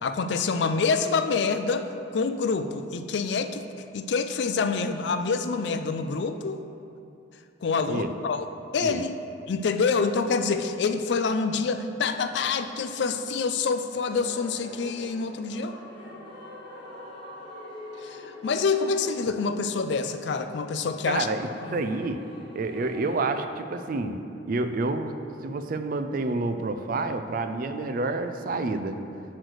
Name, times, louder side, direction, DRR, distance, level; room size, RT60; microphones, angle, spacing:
voice 1, 0.0-3.7 3.9-6.6 7.6-8.5 8.7-9.1 9.5-15.8 18.0-21.3 21.7-21.8, left 4 dB, 65° left, 9 dB, 0.4 m, -27 dB
sound 1, 14.0-23.2, left 1 dB, 25° left, 1.3 m, -44 dB
voice 2, 21.1-22.3 22.5-25.2 25.4-29.0, right 3 dB, 50° right, 9 dB, 0.4 m, -29 dB
7.9 x 3.2 x 6.4 m, 2.7 s
head